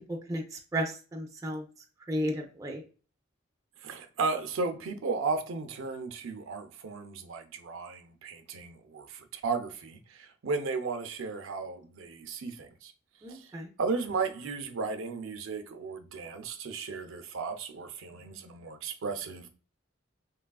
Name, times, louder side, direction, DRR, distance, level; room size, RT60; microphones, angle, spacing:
voice 1, 0.1-0.4 0.7-1.6 2.1-2.8 13.2-13.7, equal, 15° right, 0.4 m, -33 dB
voice 2, 3.8-12.9 13.3-13.5 13.8-19.5, right 4 dB, 85° right, 0.5 m, -35 dB
3.2 x 2.4 x 2.2 m
head